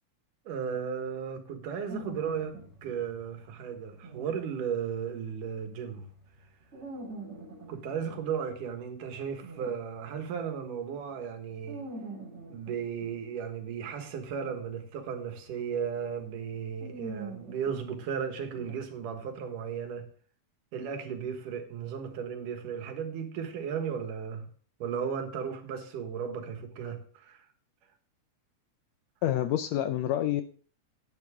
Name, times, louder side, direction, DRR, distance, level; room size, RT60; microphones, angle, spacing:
voice 1, 0.5-6.1 7.7-11.8 12.5-20.1 20.7-24.5 24.8-27.4, right 7 dB, 85° right, 3.1 m, -35 dB
sound 1, 1.9-10.5 11.0-19.4, right 2 dB, 20° right, 3.0 m, -46 dB
voice 2, 29.2-30.4, left 12 dB, 80° left, 1.6 m, -27 dB
10.5 x 9.6 x 3.6 m
omnidirectional pair, 3.6 m